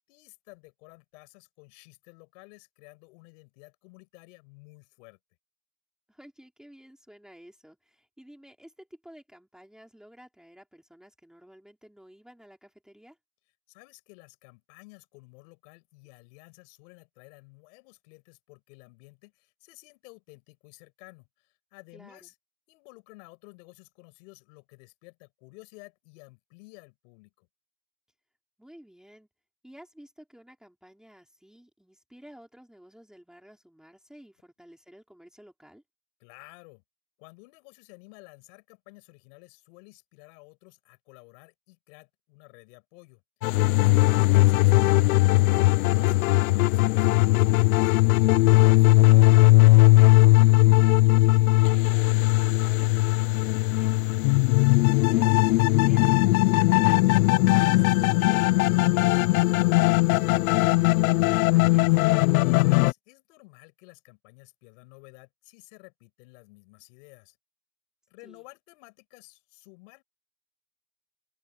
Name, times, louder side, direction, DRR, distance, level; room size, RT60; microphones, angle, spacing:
voice 1, 0.0-5.2 13.7-22.3 22.7-27.5 36.2-36.8 37.2-43.2 43.7-47.9 48.2-49.4 62.6-67.4 68.1-70.0, left 29 dB, 55° left, 6.5 m, -52 dB
voice 2, 6.1-13.2 21.9-22.3 28.6-29.3 29.6-35.8 44.0-44.4 50.5-57.1 57.4-62.0 68.2-68.4, equal, ahead, 4.4 m, -52 dB
sound 1, 43.4-62.9, left 20 dB, 70° left, 0.7 m, -19 dB
open air
supercardioid pair, 160°, 44 cm